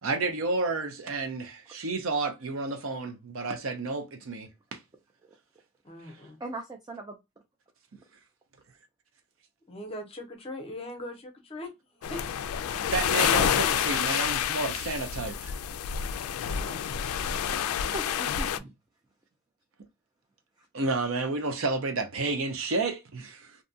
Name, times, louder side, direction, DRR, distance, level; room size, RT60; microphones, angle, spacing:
voice 1, 0.0-4.8 6.0-6.1 12.9-15.5 20.7-23.6, right 3 dB, 65° right, 0.6 m, -31 dB
voice 2, 5.8-6.4 9.7-12.2 16.4-16.8, left 1 dB, 25° left, 0.6 m, -41 dB
voice 3, 6.4-7.2 15.6-15.7 17.9-18.7 20.6-20.7, right 2 dB, 20° right, 0.4 m, -40 dB
sound 1, 12.0-18.6, left 8 dB, 85° left, 0.3 m, -28 dB
2.6 x 2.2 x 2.6 m
head